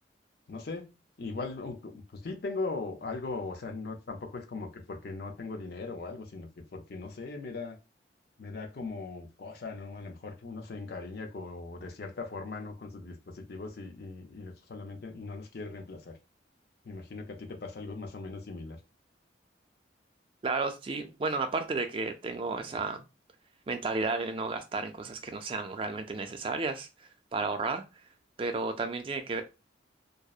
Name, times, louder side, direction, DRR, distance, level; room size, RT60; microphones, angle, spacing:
voice 1, 0.5-7.8 8.4-16.2 16.8-18.8, left 3 dB, 55° left, 0.5 m, -39 dB
voice 2, 20.4-23.0 23.7-27.8 28.4-29.4, right 3 dB, 30° right, 0.3 m, -33 dB
2.6 x 2.0 x 2.3 m
head